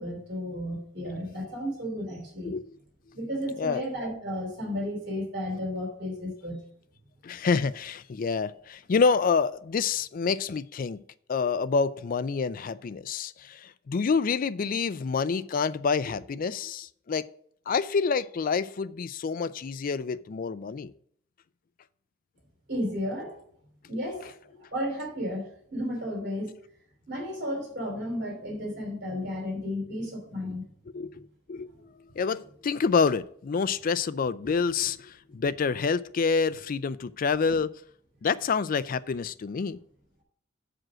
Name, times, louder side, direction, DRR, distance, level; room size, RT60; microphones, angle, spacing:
voice 1, 0.0-2.5 3.1-6.6 22.7-23.3 23.9-26.6 27.1-30.6, equal, 60° right, 3.1 m, -33 dB
voice 2, 2.4-2.8 3.6-3.8 7.2-11.0 11.3-17.3 17.7-20.9 30.9-31.7 32.2-37.7 38.2-39.8, left 5 dB, 45° left, 0.4 m, -27 dB
7.6 x 5.1 x 6.1 m
head